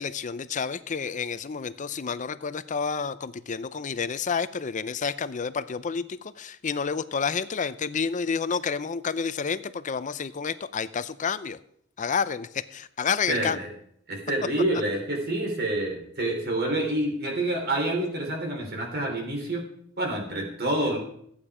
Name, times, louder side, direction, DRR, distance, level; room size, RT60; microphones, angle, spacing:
voice 1, 0.0-11.6 12.0-13.6, left 6 dB, 35° left, 14 dB, 0.5 m, -30 dB
voice 2, 13.3-13.7 14.1-19.7 20.0-21.0, right 1 dB, 50° right, 0 dB, 3.7 m, -27 dB
14.5 x 8.8 x 4.9 m, 0.70 s
head